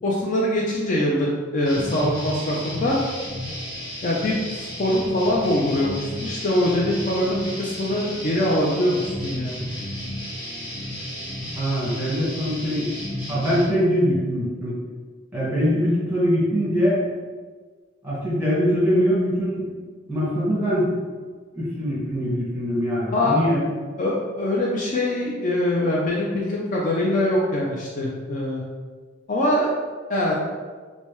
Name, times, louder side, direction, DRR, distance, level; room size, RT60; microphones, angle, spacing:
voice 1, 0.0-3.0 4.0-9.7 23.1-23.4 24.0-28.6 29.3-29.7 30.1-30.4, left 1 dB, 40° left, -3 dB, 0.4 m, -23 dB
sound 1, 1.7-13.7, equal, 20° left, 0.9 m, -33 dB
voice 2, 11.5-12.9 13.3-14.8 15.3-17.1 18.0-19.7 20.1-20.9 21.5-23.7, equal, 10° right, -9 dB, 1.4 m, -22 dB
3.3 x 2.6 x 3.0 m, 1.5 s
head